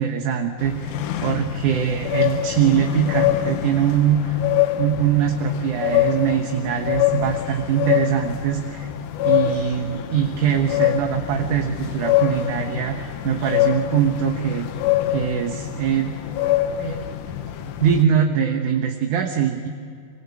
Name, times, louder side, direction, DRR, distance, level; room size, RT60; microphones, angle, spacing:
voice 1, 0.0-4.4 4.7-8.9 9.2-14.7 15.1-16.2 16.8-17.1 17.8-19.7, right 8 dB, 65° right, 4 dB, 2.6 m, -22 dB
sound 1, 0.6-18.0, left 12 dB, 70° left, 2.4 m, -25 dB
26.0 x 24.5 x 8.3 m, 2.2 s
omnidirectional pair, 4.0 m